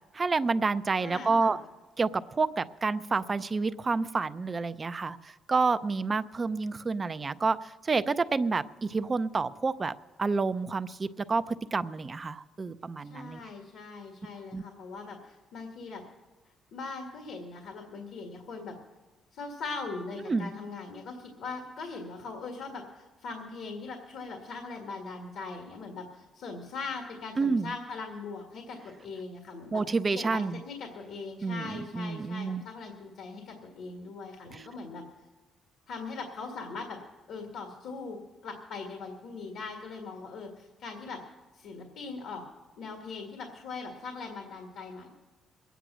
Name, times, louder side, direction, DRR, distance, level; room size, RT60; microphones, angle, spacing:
voice 1, 0.1-1.6 2.0-9.9 10.2-13.4 14.5-14.6 20.3-20.5 27.4-27.7 29.7-30.6 31.4-32.6 34.5-34.7, right 4 dB, 30° right, 13 dB, 0.5 m, -29 dB
voice 2, 1.0-1.6 13.1-16.0 16.7-18.8 19.3-29.8 30.1-35.0 35.9-37.0 37.3-38.2 38.4-41.2 41.5-42.4 42.8-45.1, left 4 dB, 75° left, 2 dB, 1.8 m, -40 dB
22.0 x 9.2 x 6.2 m, 1.2 s
cardioid pair, 115°, 0 cm